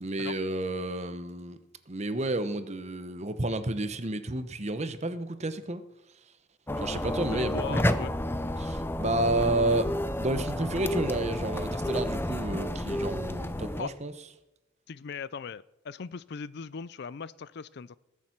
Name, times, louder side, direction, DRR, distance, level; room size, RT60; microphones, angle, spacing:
voice 1, 0.0-1.6 1.9-5.8 6.8-7.8 8.6-9.9 10.2-14.1, right 2 dB, 35° right, 11 dB, 1.0 m, -31 dB
sound 1, 6.7-13.8, left 1 dB, 10° left, 0.6 m, -31 dB
voice 2, 7.3-8.1 13.8-13.9 14.9-18.0, left 5 dB, 60° left, 19 dB, 0.4 m, -39 dB
20.0 x 7.4 x 5.9 m, 0.94 s
head